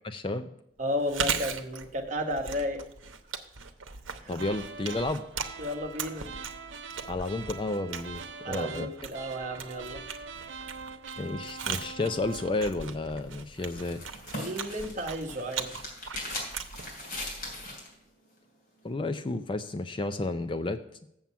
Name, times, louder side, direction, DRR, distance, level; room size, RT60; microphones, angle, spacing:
voice 1, 0.0-0.5 4.3-5.2 7.1-8.9 11.2-14.0 18.8-20.8, left 2 dB, 25° left, 10 dB, 0.4 m, -31 dB
voice 2, 0.8-2.8 4.2-4.3 5.6-6.3 8.4-10.0 14.4-15.8, equal, 40° right, 4 dB, 1.1 m, -33 dB
Chewing mastication, 0.9-17.8, right 6 dB, 85° right, 0.9 m, -39 dB
sound 1, 4.4-12.6, right 5 dB, 70° right, 0.6 m, -43 dB
sound 2, 13.1-17.9, left 1 dB, 45° left, 3.0 m, -40 dB
7.5 x 7.1 x 5.6 m, 0.80 s
head